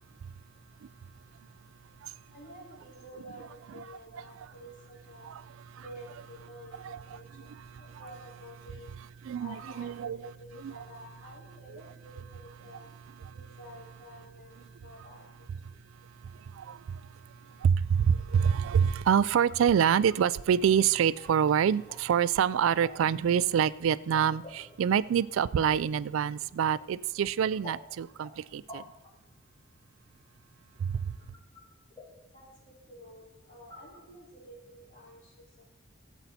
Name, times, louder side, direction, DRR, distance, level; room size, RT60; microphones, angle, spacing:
voice 1, 2.3-5.3 5.8-7.5 7.8-8.9 9.4-9.9 10.2-12.9 13.3-14.6 14.8-15.5 32.3-35.6, equal, 40° left, 4.6 m, -50 dB
voice 2, 7.5-8.0 9.2-10.3 10.6-10.9 13.2-13.3 16.0-28.8 30.8-31.1, right 8 dB, 75° right, 0.3 m, -27 dB
sound 1, 19.2-34.6, left 2 dB, 25° left, 3.4 m, -53 dB
15.5 x 8.1 x 4.1 m
head